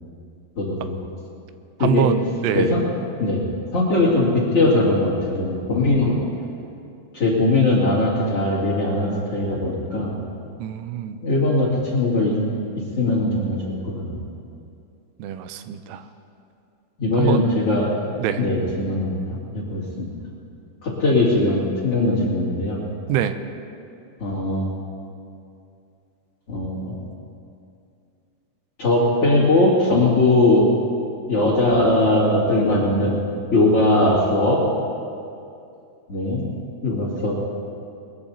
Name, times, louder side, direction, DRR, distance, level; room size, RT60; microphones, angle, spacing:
voice 1, 0.6-0.9 1.8-2.1 2.5-2.8 3.2-3.4 3.7-6.2 7.1-10.1 11.2-12.4 13.0-14.3 17.0-17.9 18.4-20.1 20.8-22.8 24.2-24.7 26.5-27.0 28.8-30.7 31.3-33.2 33.5-34.6 36.1-36.4 36.8-37.4, left 2 dB, 35° left, -6 dB, 2.8 m, -20 dB
voice 2, 1.8-2.7 10.6-11.2 15.2-16.1 17.1-17.5 18.2-18.4 23.1-23.4, right 10 dB, 80° right, 9 dB, 3.0 m, -24 dB
22.5 x 21.0 x 2.8 m, 2.5 s
omnidirectional pair, 5.7 m